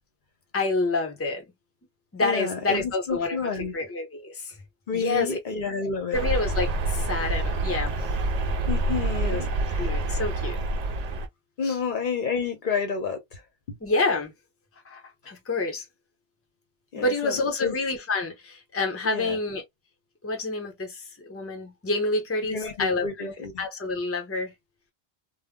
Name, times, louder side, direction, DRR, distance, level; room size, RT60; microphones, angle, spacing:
voice 1, 0.5-1.5 2.1-4.6 4.9-5.4 6.1-8.0 9.3-9.4 9.8-10.6 11.6-11.8 13.8-14.3 14.8-15.8 16.9-19.6 20.2-24.5, left 3 dB, 15° left, 0.6 m, -28 dB
voice 2, 2.2-3.7 4.9-6.2 8.7-9.9 11.6-13.4 13.7-13.8 16.9-17.7 19.0-19.4 22.5-23.7, left 5 dB, 55° left, 0.8 m, -30 dB
sound 1, 6.1-11.3, right 2 dB, 55° right, 0.5 m, -27 dB
2.1 x 2.0 x 3.5 m
omnidirectional pair, 1.0 m